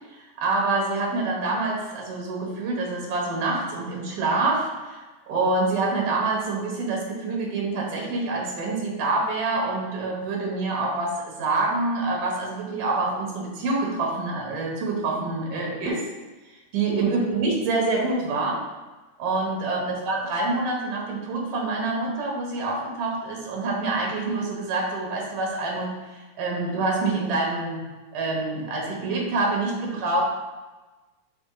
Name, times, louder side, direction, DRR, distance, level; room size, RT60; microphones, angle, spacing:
voice 1, 0.1-16.0 16.7-18.6 19.2-27.8 28.1-30.2, right 3 dB, 85° right, -1 dB, 2.8 m, -26 dB
6.0 x 4.8 x 3.9 m, 1.2 s
omnidirectional pair, 3.7 m